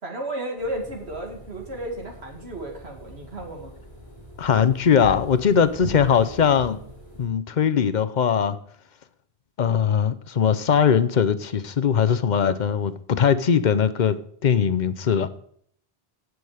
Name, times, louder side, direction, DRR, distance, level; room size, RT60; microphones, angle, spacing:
voice 1, 0.0-3.7, right 1 dB, 85° right, 1 dB, 2.5 m, -33 dB
sound 1, 0.6-7.3, equal, 45° right, 6.9 m, -41 dB
voice 2, 4.4-6.8 7.2-8.6 9.6-15.3, left 7 dB, 50° left, 13 dB, 0.8 m, -20 dB
16.5 x 6.3 x 4.9 m, 0.63 s
omnidirectional pair, 1.0 m